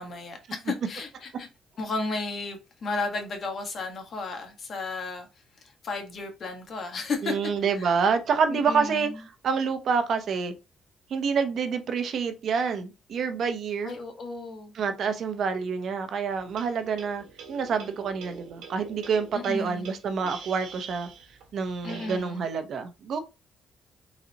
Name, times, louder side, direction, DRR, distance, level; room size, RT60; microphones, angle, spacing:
voice 1, 0.0-1.5 1.8-5.3 5.6-7.3 7.7-7.9 8.5-9.2 13.8-14.7 19.3-19.9 21.8-22.5, left 3 dB, 50° left, 1.4 m, -34 dB
voice 2, 7.2-9.1 9.4-10.5 11.1-14.0 14.7-21.1 21.5-23.2, right 5 dB, 65° right, 0.8 m, -27 dB
sound 1, 16.3-22.2, right 6 dB, 85° right, 1.2 m, -45 dB
4.1 x 4.0 x 2.9 m
cardioid pair, 90°, 0 cm